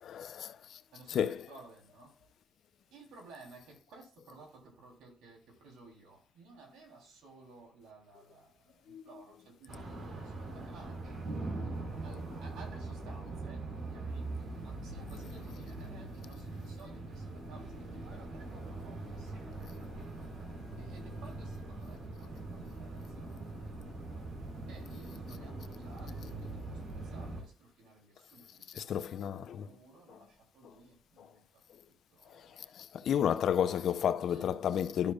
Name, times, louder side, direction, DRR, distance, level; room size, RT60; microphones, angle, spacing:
voice 1, 0.0-0.8 1.1-1.5 8.9-9.0 28.8-29.7 32.7-35.1, left 9 dB, 70° left, 0.6 m, -31 dB
voice 2, 0.9-2.1 2.9-11.2 12.0-14.3 14.6-19.7 20.8-23.7 24.5-31.4 31.9-32.6 34.3-34.5, right 3 dB, 90° right, 3.4 m, -56 dB
sound 1, 9.7-27.4, right 2 dB, 60° right, 3.7 m, -42 dB
12.5 x 6.5 x 2.4 m
cardioid pair, 90°, 0 cm